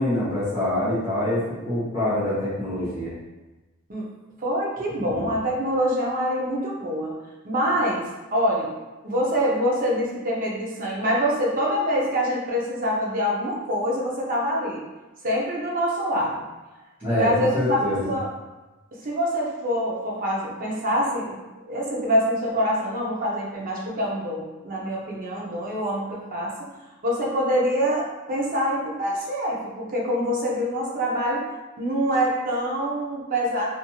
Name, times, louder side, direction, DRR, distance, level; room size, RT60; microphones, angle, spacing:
voice 1, 0.0-3.1 5.1-5.3 17.0-18.0, left 1 dB, 10° right, -16 dB, 1.0 m, -25 dB
voice 2, 4.4-7.1 7.4-8.7 9.0-14.9 15.2-16.4 17.1-18.3 19.0-21.4 21.6-26.8 27.0-31.5 31.8-33.7, equal, 40° right, -3 dB, 0.6 m, -25 dB
3.0 x 2.6 x 2.3 m, 1.1 s
head